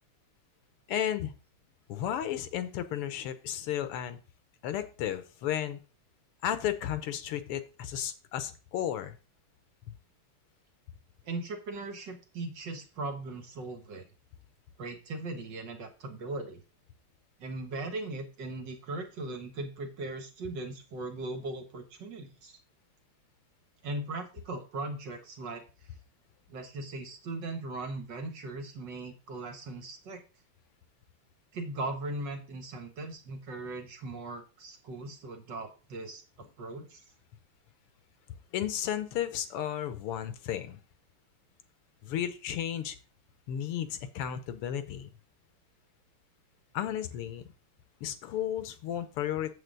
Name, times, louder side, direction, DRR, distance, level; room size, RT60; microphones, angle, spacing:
voice 1, 0.9-1.3 1.9-4.2 4.6-5.8 6.4-9.2 38.5-40.8 42.0-43.0 43.5-45.1 46.7-47.5 48.0-49.5, left 10 dB, 85° left, 11 dB, 1.9 m, -33 dB
voice 2, 11.3-14.0 14.8-16.6 17.4-22.6 23.8-25.6 26.5-30.2 31.5-37.0, right 2 dB, 60° right, 5 dB, 1.9 m, -39 dB
7.9 x 7.6 x 3.9 m, 0.33 s
omnidirectional pair, 2.4 m